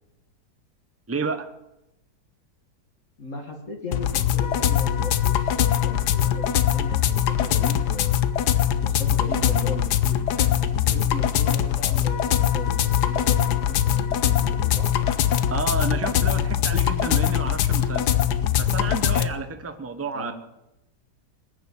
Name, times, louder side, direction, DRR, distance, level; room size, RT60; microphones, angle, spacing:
voice 1, 1.1-1.5 15.5-18.1 18.6-20.3, right 4 dB, 10° right, 8 dB, 0.7 m, -30 dB
voice 2, 3.2-8.2 8.8-10.5 10.9-14.9 20.1-20.3, left 1 dB, 45° left, 2 dB, 2.0 m, -37 dB
sound 1, 3.9-19.3, left 10 dB, 70° left, 1.3 m, -22 dB
20.0 x 7.1 x 8.4 m, 0.91 s
omnidirectional pair, 1.9 m